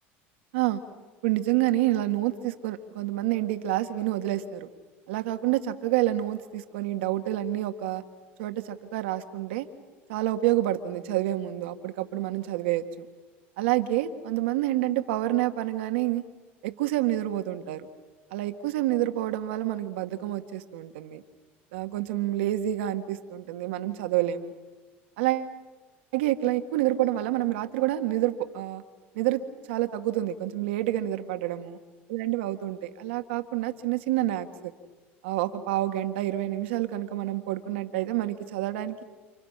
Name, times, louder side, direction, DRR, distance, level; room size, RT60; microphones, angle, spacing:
voice 1, 1.2-4.7 5.1-8.0 8.4-9.7 10.1-13.1 13.6-16.2 16.6-17.9 18.3-21.2 21.7-24.5 25.2-25.5 26.1-28.8 29.2-29.4 29.7-31.8 32.1-34.7 35.2-39.0, right 14 dB, 80° right, 8 dB, 1.8 m, -28 dB
29.5 x 27.5 x 5.9 m, 1.3 s
hypercardioid pair, 85°, 6 cm